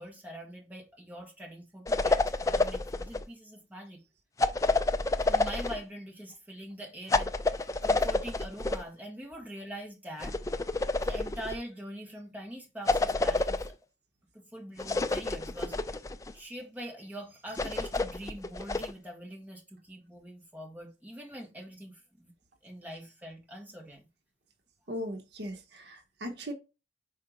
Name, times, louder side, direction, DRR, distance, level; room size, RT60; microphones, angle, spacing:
voice 1, 0.0-4.0 5.3-10.4 11.0-13.8 14.3-15.8 16.3-22.3 22.6-24.1, equal, 10° right, 1.6 m, -43 dB
sound 1, 1.9-3.2 4.4-5.8 7.1-8.8 10.2-11.6 12.9-13.7 14.8-16.3 17.6-18.9, left 2 dB, 15° left, 0.3 m, -28 dB
voice 2, 24.9-26.5, equal, 70° right, 1.0 m, -38 dB
4.7 x 4.4 x 5.0 m
head